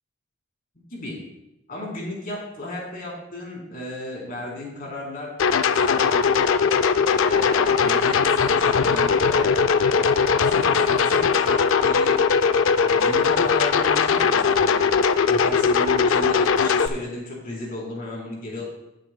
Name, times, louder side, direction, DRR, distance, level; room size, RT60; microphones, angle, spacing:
voice 1, 1.7-5.3 5.8-6.3 7.1-9.5 10.4-12.2 12.8-14.9 15.3-18.6, left 1 dB, 45° left, -3 dB, 3.5 m, -34 dB
sound 1, 5.4-16.9, left 5 dB, 65° left, 0.4 m, -19 dB
17.0 x 7.6 x 2.2 m, 0.93 s
head